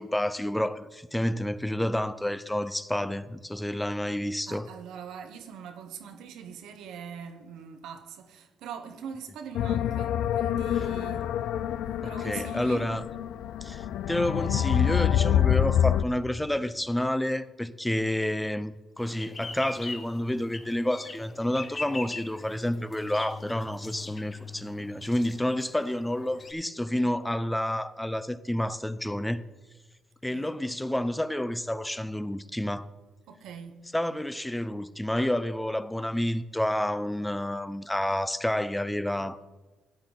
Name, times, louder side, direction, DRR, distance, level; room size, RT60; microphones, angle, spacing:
voice 1, 0.0-4.7 12.0-13.0 13.6-29.4 30.2-32.9 33.9-39.4, left 1 dB, 5° left, 0.6 m, -29 dB
voice 2, 4.5-11.3 11.9-12.9 30.3-30.5 33.3-33.8, right 7 dB, 85° right, 1.0 m, -42 dB
sound 1, 9.5-16.0, left 10 dB, 85° left, 0.4 m, -26 dB
sound 2, 19.0-26.5, left 3 dB, 35° left, 1.3 m, -41 dB
13.0 x 8.8 x 3.9 m
cardioid pair, 90°, 0 cm